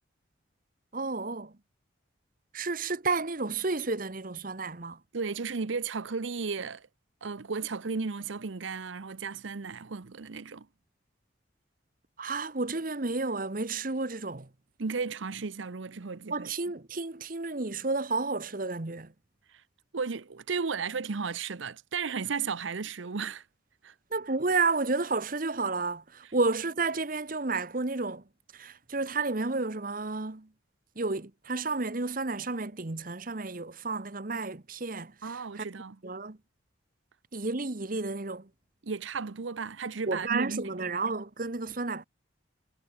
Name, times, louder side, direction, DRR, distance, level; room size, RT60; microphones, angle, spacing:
voice 1, 0.9-1.5 2.5-5.0 12.2-14.5 16.3-19.1 24.1-28.2 28.5-30.5 31.0-35.1 35.6-35.7 36.0-36.4 37.3-38.5 40.1-42.0, right 3 dB, 45° right, 1.1 m, -31 dB
voice 2, 5.1-6.9 7.2-10.7 14.8-16.5 19.9-23.4 23.8-23.9 35.2-36.0 38.8-40.8 41.1-41.2, right 5 dB, 75° right, 0.8 m, -34 dB
head